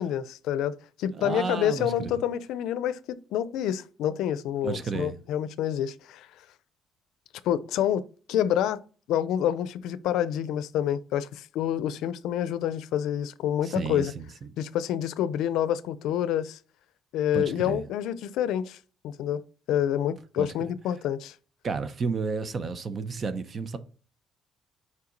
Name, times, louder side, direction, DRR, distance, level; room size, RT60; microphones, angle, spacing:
voice 1, 0.0-6.3 7.4-8.0 8.3-8.8 9.1-14.1 14.6-16.6 17.1-18.8 19.0-19.4 19.7-21.3, left 10 dB, 85° left, 0.4 m, -28 dB
voice 2, 1.2-2.1 4.6-5.2 13.6-14.2 17.3-17.8 20.4-20.5 21.6-23.8, right 5 dB, 35° right, 0.6 m, -31 dB
5.7 x 4.6 x 3.9 m
cardioid pair, 130°, 0 cm